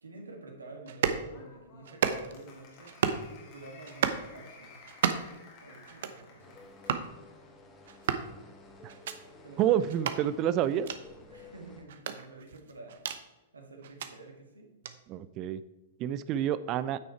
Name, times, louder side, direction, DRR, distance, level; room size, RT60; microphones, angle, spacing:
voice 1, 0.0-3.0 3.4-4.8 5.6-6.6 8.8-10.1 11.3-13.0 13.5-14.7, right 3 dB, 80° right, 2 dB, 1.9 m, -49 dB
sound 1, 0.9-1.2 1.9-2.4 2.9-3.3 3.8-4.3 4.9-5.4 5.9-6.2 6.8-7.1 7.9-8.3 8.9-9.2 9.9-10.2 10.8-11.0 11.9-13.2 13.8-14.1 14.8-15.0, right 8 dB, 60° right, 0.8 m, -32 dB
Applause, 1.3-7.1, left 4 dB, 40° left, 2.2 m, -54 dB
sound 2, 6.4-11.8, left 2 dB, 25° left, 1.7 m, -53 dB
voice 2, 9.6-10.9 15.1-15.6 16.0-17.0, right 10 dB, 35° right, 15 dB, 0.4 m, -28 dB
9.2 x 6.1 x 4.6 m, 1.0 s
figure-of-eight pair, 105°, 0 cm